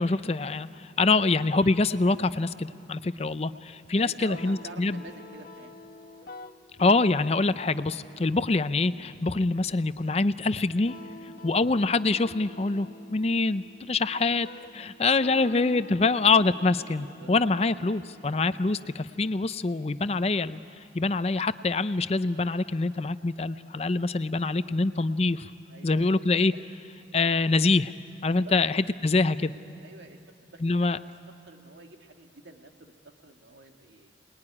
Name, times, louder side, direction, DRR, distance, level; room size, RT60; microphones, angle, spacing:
voice 1, 0.0-5.0 6.8-10.9 11.4-14.5 14.7-20.6 20.9-25.5 25.8-26.5 27.1-27.9 28.2-29.5 30.6-31.0, left 3 dB, 35° left, 13 dB, 0.5 m, -25 dB
voice 2, 3.9-5.7 15.2-15.4 17.0-17.3 25.7-26.1 26.5-26.6 27.8-27.9 28.4-28.5 29.8-30.9 31.5-32.9 33.2-34.1, right 2 dB, 85° right, 4 dB, 1.9 m, -47 dB
sound 1, 4.3-19.3, left 1 dB, 50° left, 1.5 m, -49 dB
28.0 x 20.5 x 9.8 m, 2.9 s
head